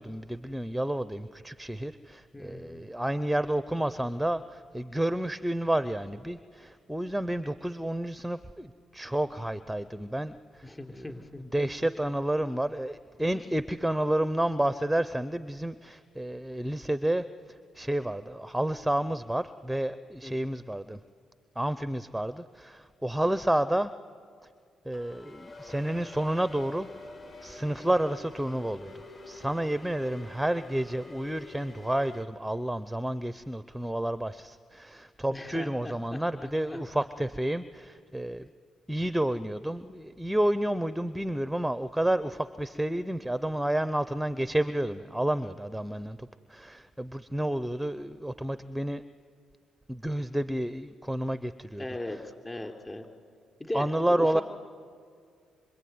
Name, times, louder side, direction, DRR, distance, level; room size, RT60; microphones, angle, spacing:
voice 1, 0.0-21.0 21.6-23.9 24.9-26.9 27.4-28.9 29.2-38.5 38.9-49.0 49.9-51.9 53.7-54.4, right 1 dB, 5° right, 13 dB, 0.6 m, -30 dB
voice 2, 2.3-2.9 10.6-11.5 20.2-20.5 35.3-36.8 51.8-52.2 52.4-53.0 53.6-54.4, left 1 dB, 20° left, 5 dB, 3.5 m, -39 dB
sound 1, 24.9-32.2, left 2 dB, 40° left, 3.4 m, -47 dB
25.0 x 25.0 x 9.5 m, 2.2 s
cardioid pair, 90°, 0 cm